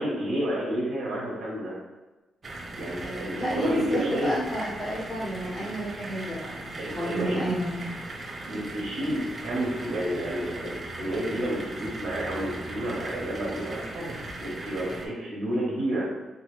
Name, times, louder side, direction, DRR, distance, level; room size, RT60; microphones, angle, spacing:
voice 1, 0.0-1.7 2.8-4.3 6.8-7.5 8.5-16.1, right 1 dB, 80° right, -6 dB, 1.0 m, -30 dB
sound 1, 2.4-15.1, right 2 dB, 35° right, 0.5 m, -38 dB
voice 2, 3.0-7.7 12.6-12.9, equal, 35° left, -7 dB, 1.2 m, -31 dB
3.0 x 2.6 x 3.1 m, 1.1 s
cardioid pair, 110°, 0 cm